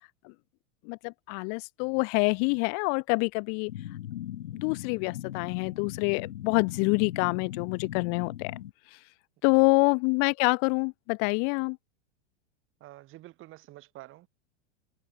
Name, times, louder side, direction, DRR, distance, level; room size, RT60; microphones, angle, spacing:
voice 1, 0.9-3.7 4.5-8.5 9.4-11.8, left 40 dB or more, 40° left, 0.6 m, -26 dB
sound 1, 3.7-8.7, left 12 dB, 90° left, 1.9 m, -39 dB
voice 2, 12.8-14.3, right 17 dB, 35° right, 3.1 m, -48 dB
supercardioid pair, 140°, 35 cm